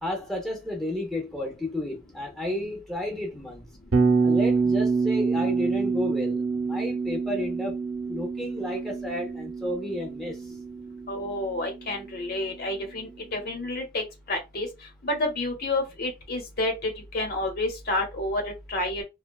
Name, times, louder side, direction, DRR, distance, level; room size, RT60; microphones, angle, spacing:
voice 1, 0.0-3.6 4.2-7.8 8.1-10.6, left 1 dB, ahead, 0.5 m, -32 dB
Bass guitar, 3.9-12.0, right 4 dB, 75° right, 0.6 m, -27 dB
voice 2, 11.1-14.7 15.0-18.4 18.7-19.0, left 2 dB, 50° left, 0.9 m, -29 dB
2.6 x 2.2 x 2.2 m
head